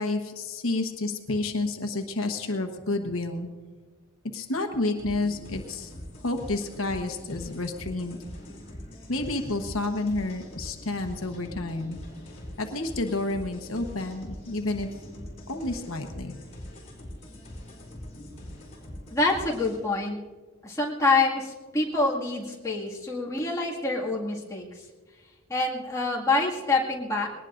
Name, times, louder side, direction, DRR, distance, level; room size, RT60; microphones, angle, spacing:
voice 1, 0.0-3.5 4.3-5.9 6.2-8.2 9.1-12.0 12.6-14.9 15.5-16.4, left 2 dB, 70° left, 4 dB, 1.2 m, -30 dB
sound 1, 5.0-19.8, left 1 dB, 30° left, 4.2 m, -43 dB
voice 2, 19.1-20.2 20.6-24.8 25.5-27.3, left 3 dB, 15° left, -4 dB, 2.0 m, -26 dB
21.5 x 19.0 x 2.6 m, 1.4 s
head